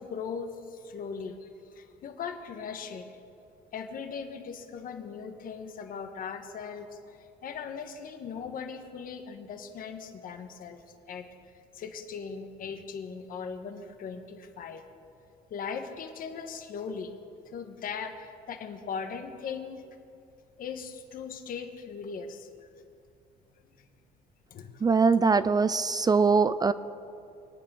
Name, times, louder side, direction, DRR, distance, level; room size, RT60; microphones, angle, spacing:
voice 1, 0.0-3.1 3.7-11.3 11.7-14.8 15.5-17.1 17.4-19.8 20.6-22.7 23.8-23.9 24.5-24.8, left 6 dB, 55° left, 6 dB, 1.4 m, -39 dB
voice 2, 24.8-26.7, right 4 dB, 25° right, 14 dB, 0.4 m, -22 dB
24.0 x 8.9 x 6.3 m, 2.5 s
cardioid pair, 110°, 17 cm